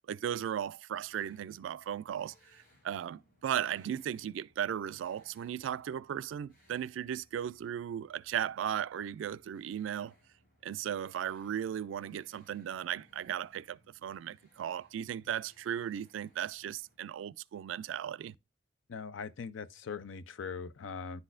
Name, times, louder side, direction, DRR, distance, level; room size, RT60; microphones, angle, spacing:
voice 1, 0.1-10.1 10.6-18.4, right 9 dB, 90° right, 0.3 m, -36 dB
sound 1, 1.0-17.0, equal, 50° left, 3.2 m, -68 dB
voice 2, 18.9-21.2, left 5 dB, 90° left, 0.5 m, -41 dB
10.5 x 4.0 x 2.4 m
head